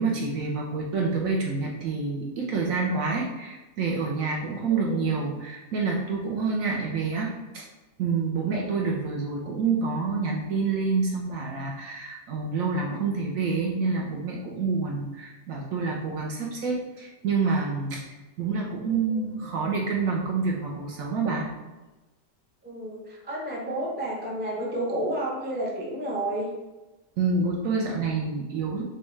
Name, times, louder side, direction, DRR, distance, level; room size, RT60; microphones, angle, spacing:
voice 1, 0.0-7.6 8.0-18.0 18.4-21.5 27.2-28.8, right 4 dB, 65° right, -1 dB, 0.9 m, -27 dB
voice 2, 4.7-5.2 22.6-26.5, right 1 dB, 15° right, -3 dB, 0.3 m, -31 dB
6.2 x 2.3 x 3.2 m, 1.1 s
omnidirectional pair, 1.8 m